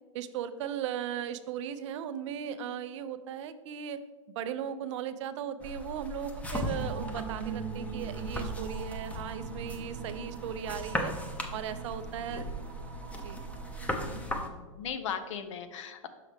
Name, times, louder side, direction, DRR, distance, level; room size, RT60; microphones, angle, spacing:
voice 1, 0.1-4.0 4.4-11.1 11.5-12.4 13.2-13.4, right 9 dB, 60° right, 12 dB, 0.5 m, -37 dB
voice 2, 2.4-2.8 10.1-10.3 12.3-12.4 14.0-16.1, left 7 dB, 65° left, 10 dB, 0.7 m, -40 dB
sound 1, 5.6-14.5, equal, 10° left, 0.7 m, -38 dB
sound 2, 6.7-14.3, right 6 dB, 75° right, 0.9 m, -42 dB
6.1 x 5.7 x 3.4 m, 1.3 s
hypercardioid pair, 105°, 17 cm